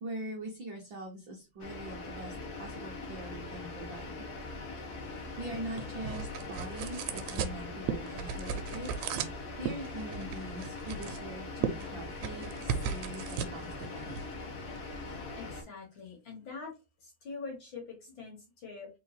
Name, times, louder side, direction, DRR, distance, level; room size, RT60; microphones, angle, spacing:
voice 1, 0.0-4.3 5.4-8.9 9.6-14.1, right 1 dB, 65° right, -1 dB, 1.2 m, -43 dB
sound 1, 1.6-15.6, left 3 dB, 70° left, 0.9 m, -42 dB
sound 2, 5.0-15.2, right 7 dB, 85° right, 1.9 m, -38 dB
voice 2, 15.3-16.7 17.0-18.9, left 4 dB, 50° left, 0 dB, 1.7 m, -44 dB
4.3 x 3.4 x 3.2 m, 0.27 s
omnidirectional pair, 3.3 m